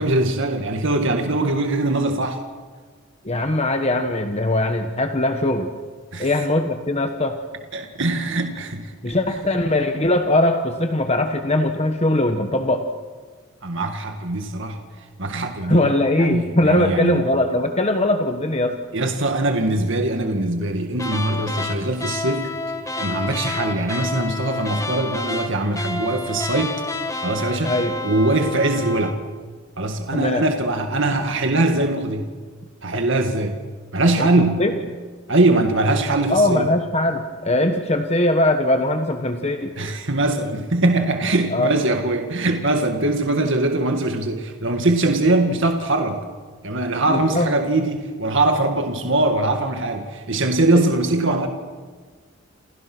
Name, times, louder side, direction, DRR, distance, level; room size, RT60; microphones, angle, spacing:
voice 1, 0.0-2.4 6.1-6.3 7.7-8.9 13.6-14.8 15.2-15.8 16.2-17.3 18.9-22.5 23.0-26.8 27.2-27.7 28.0-29.2 29.8-32.3 32.8-33.6 33.9-34.7 35.3-36.7 39.8-46.2 46.6-51.5, right 2 dB, 60° right, 5 dB, 2.0 m, -21 dB
voice 2, 3.2-5.7 6.2-7.4 9.0-12.8 15.6-18.8 27.6-28.0 30.1-30.4 34.2-34.7 36.3-39.7 41.5-41.7 47.1-47.5 50.7-50.9, left 1 dB, 30° left, 6 dB, 1.4 m, -21 dB
sound 1, 20.9-29.2, left 2 dB, 15° left, 1.5 m, -29 dB
29.0 x 29.0 x 6.2 m, 1.5 s
head